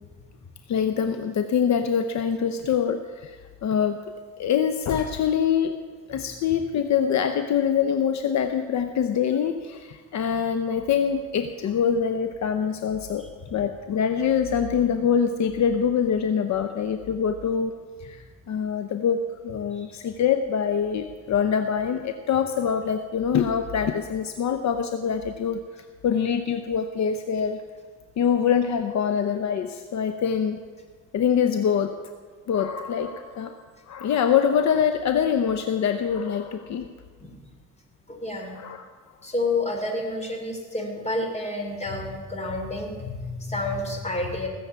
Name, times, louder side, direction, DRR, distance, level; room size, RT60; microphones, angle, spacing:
voice 1, 0.7-4.0 4.4-5.8 6.1-13.2 13.5-17.7 18.0-25.6 26.0-27.6 28.2-30.6 31.1-31.9 32.5-33.6 33.9-36.9 38.5-38.9, left 7 dB, 65° left, 8 dB, 0.8 m, -24 dB
voice 2, 38.1-38.6 39.2-44.5, left 2 dB, 20° left, 3 dB, 3.0 m, -29 dB
18.5 x 7.2 x 8.1 m, 1.5 s
cardioid pair, 90°, 30 cm